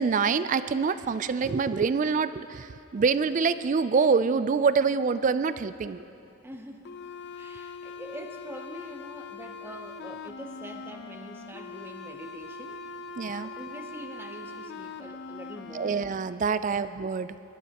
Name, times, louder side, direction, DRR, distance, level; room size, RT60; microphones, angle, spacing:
voice 1, 0.0-2.7 2.9-6.0 13.2-13.5 15.7-17.3, right 5 dB, 35° right, 13 dB, 0.3 m, -25 dB
voice 2, 6.4-6.8 7.4-12.8 13.4-16.0 16.7-16.8, right 1 dB, 10° right, 4 dB, 0.7 m, -44 dB
sound 1, 6.8-16.1, left 4 dB, 50° left, 0.5 m, -42 dB
22.5 x 12.5 x 2.9 m, 2.7 s
head